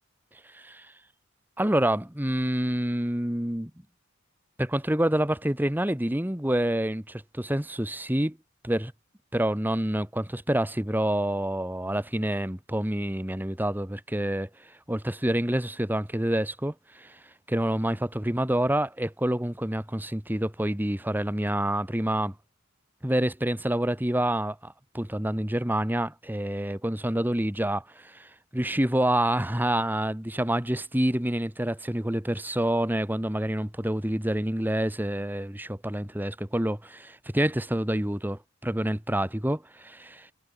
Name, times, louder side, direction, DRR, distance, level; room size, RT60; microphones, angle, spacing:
voice 1, 0.5-0.9 1.6-3.7 4.6-8.4 8.6-8.9 9.3-17.2 17.5-22.3 23.0-40.3, right 1 dB, 10° right, 1.4 m, -27 dB
head